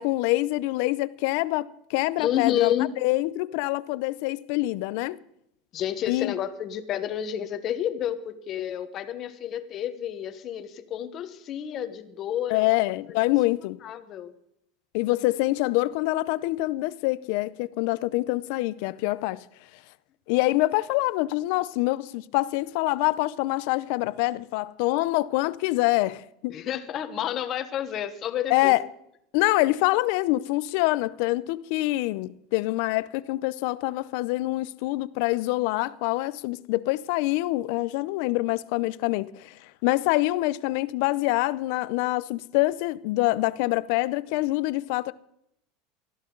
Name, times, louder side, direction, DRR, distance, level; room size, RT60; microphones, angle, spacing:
voice 1, 0.0-2.7 3.0-5.2 6.1-6.3 12.5-13.8 14.9-19.4 20.3-26.6 28.5-28.8 29.3-45.1, left 19 dB, 60° left, 0.6 m, -25 dB
voice 2, 2.2-2.9 5.7-12.8 13.1-13.3 13.8-14.3 26.5-28.7, left 10 dB, 35° left, 1.3 m, -30 dB
18.5 x 14.0 x 3.9 m
supercardioid pair, 155°, 0 cm